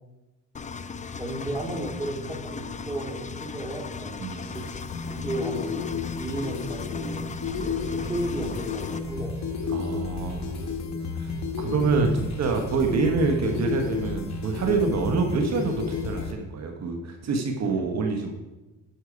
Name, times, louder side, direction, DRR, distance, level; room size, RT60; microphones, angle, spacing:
Engine, 0.5-9.0, left 5 dB, 25° left, 0.5 m, -37 dB
voice 1, 1.1-4.2 4.5-4.7 5.1-7.2 8.0-9.4, right 1 dB, 10° right, 0 dB, 2.4 m, -33 dB
voice 2, 4.2-4.6 7.6-8.1 9.7-10.6 11.6-18.3, right 4 dB, 60° right, 3 dB, 1.3 m, -26 dB
sound 1, 4.3-16.3, left 6 dB, 65° left, 1.2 m, -32 dB
sound 2, 7.4-16.2, right 1 dB, 90° right, 2.4 m, -40 dB
9.9 x 6.4 x 5.1 m, 1.1 s
cardioid pair, 90°, 30 cm